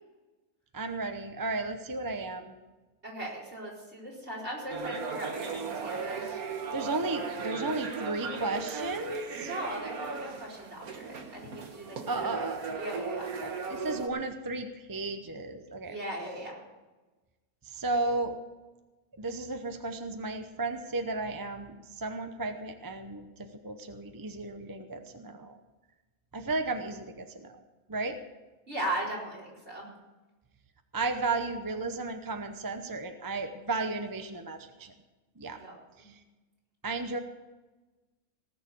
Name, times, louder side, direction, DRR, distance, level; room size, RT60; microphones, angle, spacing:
voice 1, 0.7-2.5 6.7-9.5 12.1-12.8 13.2-16.0 17.6-18.4 19.2-25.6 26.3-27.6 27.9-28.2 30.9-34.9 35.4-35.6 36.0-36.2 36.8-37.2, right 3 dB, 20° right, 7 dB, 0.5 m, -34 dB
voice 2, 3.0-6.3 9.3-12.3 12.8-13.3 15.8-16.5 28.7-29.9 35.6-35.7 36.0-36.1, right 1 dB, 45° right, -4 dB, 4.6 m, -38 dB
sound 1, 4.7-14.1, right 5 dB, 70° right, 1.7 m, -37 dB
18.5 x 6.7 x 8.2 m, 1.2 s
omnidirectional pair, 1.6 m